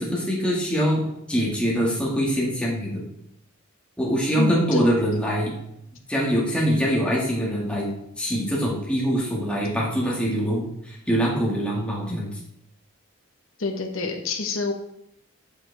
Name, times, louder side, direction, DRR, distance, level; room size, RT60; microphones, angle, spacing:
voice 1, 0.0-3.0 4.0-5.5 6.1-7.9 8.2-12.3, equal, 5° left, -4 dB, 1.9 m, -24 dB
voice 2, 4.4-4.8 13.6-14.7, left 3 dB, 65° left, 2 dB, 1.1 m, -27 dB
7.9 x 7.4 x 3.5 m, 0.78 s
head